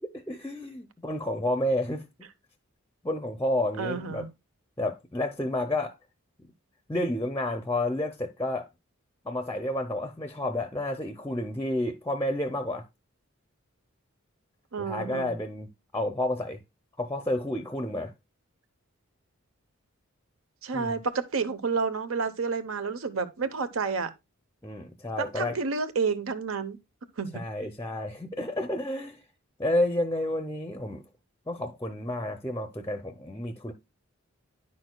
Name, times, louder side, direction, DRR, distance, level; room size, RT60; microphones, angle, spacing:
voice 1, 0.0-2.0 3.0-4.3 4.8-5.9 6.9-8.7 9.2-12.8 14.8-16.6 17.0-18.1 20.7-20.9 24.6-25.6 27.3-29.2 29.6-31.0 31.5-33.7, left 1 dB, 10° left, 0.5 m, -30 dB
voice 2, 3.8-4.3 14.7-15.3 20.6-24.1 25.2-26.8 27.2-27.4, right 5 dB, 80° right, 0.8 m, -30 dB
9.8 x 6.2 x 2.2 m
head